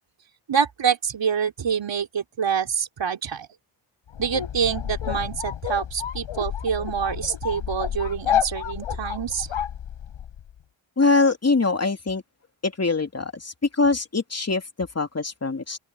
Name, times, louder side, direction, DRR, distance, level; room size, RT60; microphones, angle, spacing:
voice 1, 0.5-3.5 4.2-9.5, right 7 dB, 60° right, 4.4 m, -26 dB
sound 1, 4.1-10.4, left 10 dB, 80° left, 4.7 m, -29 dB
voice 2, 11.0-12.2 12.6-15.8, left 3 dB, 30° left, 3.0 m, -23 dB
open air
cardioid pair, 75°, 49 cm